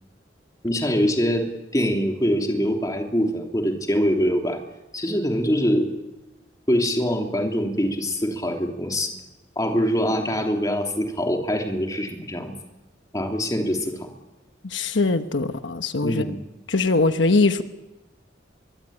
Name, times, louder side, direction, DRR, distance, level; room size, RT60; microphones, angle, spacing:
voice 1, 0.6-1.4 1.7-4.6 4.9-5.9 6.7-9.1 9.5-12.5 13.1-14.1 16.0-16.4, equal, 20° left, 2 dB, 3.2 m, -23 dB
voice 2, 14.6-16.2 16.7-17.6, left 3 dB, 80° left, 8 dB, 1.1 m, -21 dB
25.0 x 23.0 x 8.9 m, 1.1 s
head